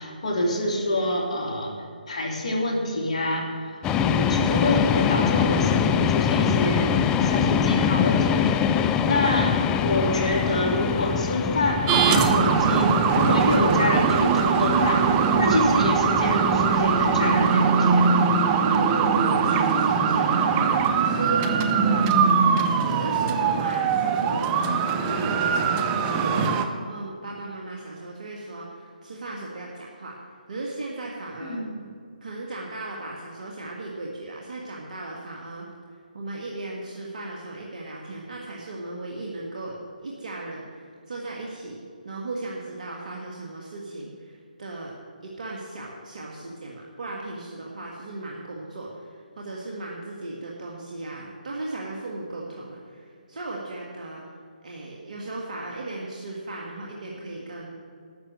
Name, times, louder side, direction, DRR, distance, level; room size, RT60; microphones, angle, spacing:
voice 1, 0.0-18.1 31.4-31.7, left 1 dB, 45° left, 0 dB, 3.1 m, -27 dB
sound 1, 3.8-17.5, left 7 dB, 15° left, 0.4 m, -25 dB
sound 2, 11.9-26.7, right 5 dB, 20° right, 0.8 m, -21 dB
voice 2, 18.6-22.3 22.8-24.5 25.0-26.6 26.9-30.2 30.5-31.6 32.2-35.7 36.1-41.8 42.0-44.3 44.6-44.9 45.2-54.2 54.6-57.7, right 2 dB, 60° right, -2 dB, 1.9 m, -36 dB
12.5 x 7.7 x 7.8 m, 2.4 s
figure-of-eight pair, 150°, 5 cm